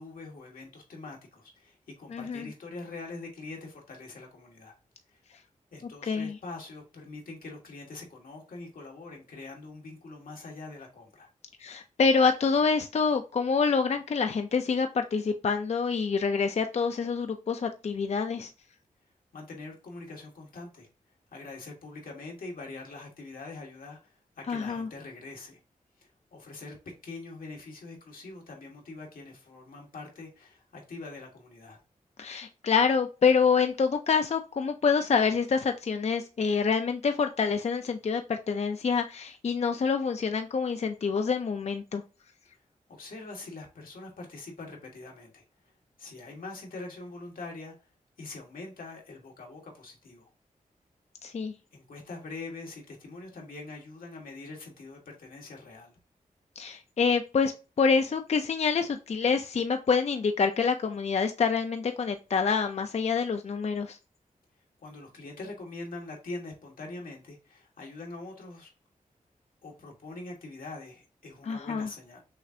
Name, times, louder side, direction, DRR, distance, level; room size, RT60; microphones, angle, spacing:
voice 1, 0.0-4.7 5.7-11.3 19.3-20.9 21.3-25.6 26.0-31.8 42.9-45.4 46.0-47.7 48.2-50.3 51.7-55.9 64.8-68.7 69.6-72.2, left 3 dB, 85° left, 1.5 m, -43 dB
voice 2, 2.1-2.5 6.0-6.3 11.6-18.5 24.5-24.9 32.2-42.0 51.2-51.5 56.6-64.0 71.5-71.9, left 5 dB, 50° left, 0.4 m, -26 dB
6.3 x 2.5 x 2.7 m
wide cardioid pair, 75°, 14 cm